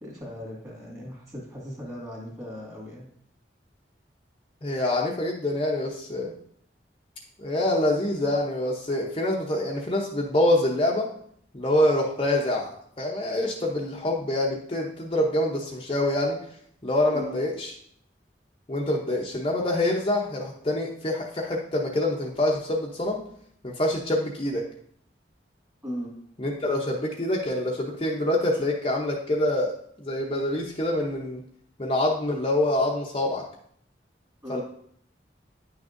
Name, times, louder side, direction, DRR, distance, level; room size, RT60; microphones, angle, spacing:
voice 1, 0.0-3.1 17.1-17.4 25.8-26.1 34.4-34.6, equal, 15° right, -3 dB, 2.0 m, -37 dB
voice 2, 4.6-6.3 7.4-11.1 11.5-16.4 16.8-17.7 18.7-23.2 23.6-24.6 26.4-29.7 30.0-31.4 31.8-33.4 34.5-34.6, left 1 dB, 30° left, -2 dB, 0.7 m, -26 dB
9.7 x 6.2 x 2.6 m, 0.66 s
head